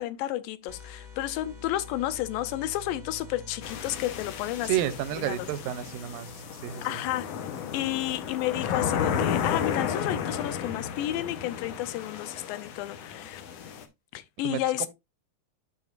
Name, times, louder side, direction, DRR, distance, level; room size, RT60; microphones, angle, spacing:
voice 1, 0.0-4.8 5.2-5.5 6.8-7.3 7.7-13.4 14.1-14.9, left 14 dB, 90° left, 2.4 m, -31 dB
sound 1, 0.7-10.4, left 2 dB, 20° right, 1.3 m, -48 dB
sound 2, 3.6-13.8, left 8 dB, 70° left, 1.5 m, -33 dB
voice 2, 4.7-6.3 6.6-7.0 14.4-14.9, right 13 dB, 90° right, 2.4 m, -31 dB
12.0 x 4.7 x 2.4 m
omnidirectional pair, 3.9 m